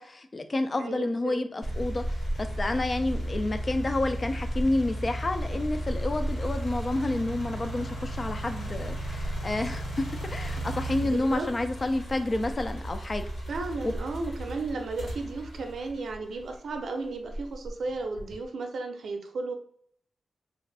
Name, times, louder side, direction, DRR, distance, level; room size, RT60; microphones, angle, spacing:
voice 1, 0.0-2.0 2.4-10.0 10.3-13.2 13.8-13.9, left 2 dB, 25° left, 8 dB, 0.3 m, -29 dB
voice 2, 0.8-1.5 11.0-11.5 13.5-19.5, right 3 dB, 70° right, 4 dB, 0.5 m, -34 dB
sound 1, 1.6-16.6 17.2-18.4, right 1 dB, 75° left, 1.3 m, -34 dB
3.5 x 2.4 x 3.2 m, 0.66 s
wide cardioid pair, 175°, 0 cm